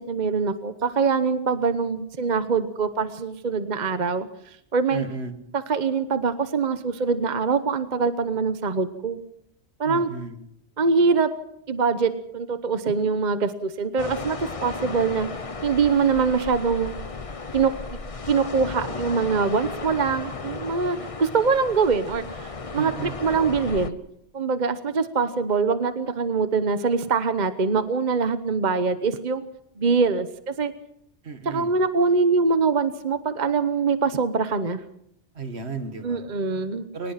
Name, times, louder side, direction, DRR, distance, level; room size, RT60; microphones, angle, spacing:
voice 1, 0.0-4.3 4.7-5.0 5.7-9.2 9.8-10.1 10.8-11.3 11.7-15.3 15.6-17.0 17.5-17.7 18.3-22.9 23.2-24.0 24.3-29.4 29.8-30.7 31.4-34.8 36.0-36.9, right 5 dB, 45° right, 11 dB, 1.1 m, -23 dB
voice 2, 4.9-5.4 9.8-10.4 22.7-23.2 31.2-31.7 35.3-36.2 36.9-37.1, right 4 dB, 70° right, 8 dB, 2.1 m, -34 dB
sound 1, 14.0-23.9, left 4 dB, 35° left, 1.0 m, -35 dB
23.0 x 19.5 x 5.8 m, 0.74 s
omnidirectional pair, 1.1 m